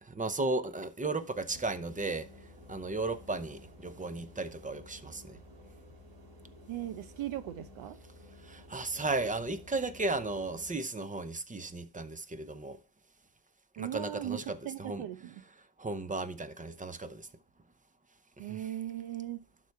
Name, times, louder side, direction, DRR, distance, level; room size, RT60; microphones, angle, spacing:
voice 1, 0.0-2.3 2.7-5.4 8.4-12.8 13.8-15.0 15.8-17.3 18.4-18.6, right 3 dB, 15° right, 0.8 m, -35 dB
sound 1, 1.5-10.7, left 1 dB, 45° right, 3.2 m, -53 dB
voice 2, 6.7-8.0 13.8-14.4 14.6-15.4 18.4-19.4, right 12 dB, 75° right, 0.9 m, -38 dB
11.5 x 4.2 x 4.6 m
cardioid pair, 90°, 49 cm